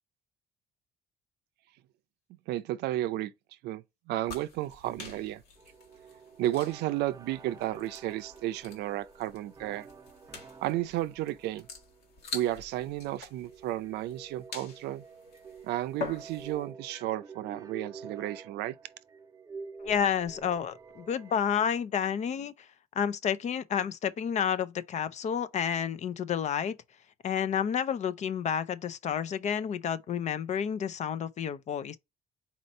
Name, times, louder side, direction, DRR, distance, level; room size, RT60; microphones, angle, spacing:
voice 1, 2.5-3.3 3.6-5.4 6.4-9.9 10.6-11.7 12.3-15.0 15.6-18.7, right 14 dB, 80° right, 0.5 m, -33 dB
sound 1, 4.2-16.7, left 5 dB, 70° left, 1.6 m, -46 dB
sound 2, 5.6-21.4, right 5 dB, 20° right, 0.5 m, -49 dB
voice 2, 19.8-22.5 23.0-26.7 27.2-32.0, left 8 dB, 45° left, 0.5 m, -30 dB
4.3 x 2.6 x 4.2 m
cardioid pair, 110°, 17 cm